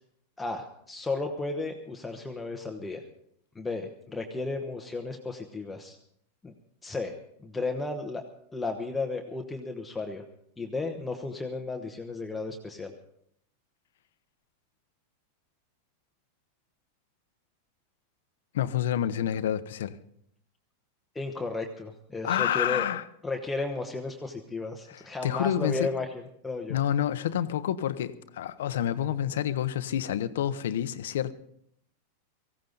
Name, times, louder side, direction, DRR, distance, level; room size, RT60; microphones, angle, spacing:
voice 1, 0.4-3.0 3.5-6.0 6.4-6.5 6.8-8.2 8.5-10.2 10.6-12.9 21.1-22.8 23.2-26.1 26.4-26.8, left 3 dB, 10° left, 3 dB, 1.1 m, -34 dB
voice 2, 18.5-20.0 22.2-23.0 24.9-25.9 26.7-31.3, left 10 dB, 80° left, 14 dB, 0.9 m, -28 dB
18.5 x 16.0 x 4.0 m, 0.70 s
supercardioid pair, 145°, 0 cm